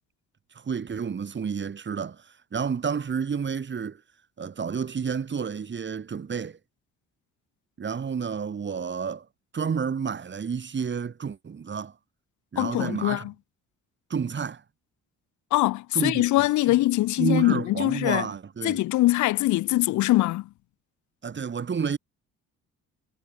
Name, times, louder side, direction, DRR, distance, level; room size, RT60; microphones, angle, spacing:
voice 1, 0.5-4.0 4.4-6.6 7.8-9.3 9.5-11.9 12.5-13.3 14.1-14.6 15.9-16.7 17.2-18.8 21.2-22.0, right 6 dB, 40° right, 2.3 m, -30 dB
voice 2, 12.6-13.3 15.5-18.3 18.6-20.5, left 17 dB, 75° left, 0.5 m, -23 dB
cardioid pair, 90°, 30 cm